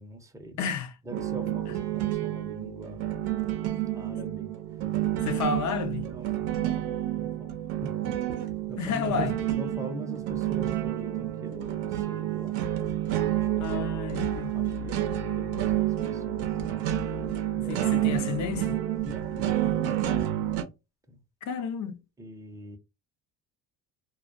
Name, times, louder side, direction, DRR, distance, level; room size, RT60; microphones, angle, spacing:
voice 1, 0.0-0.7 1.0-3.1 3.9-4.8 5.3-5.5 6.0-7.5 7.8-8.2 8.4-12.6 13.3-13.9 14.5-17.3 17.6-18.2 19.0-20.3 21.1-21.2 22.2-22.8, right 1 dB, 10° right, 0.6 m, -43 dB
voice 2, 0.6-0.9 5.2-6.0 8.8-9.3 13.6-14.5 17.7-18.8 21.4-22.0, left 6 dB, 50° left, 0.5 m, -31 dB
sound 1, 1.1-20.6, right 12 dB, 85° right, 0.6 m, -29 dB
2.3 x 2.2 x 2.5 m
cardioid pair, 100°, 39 cm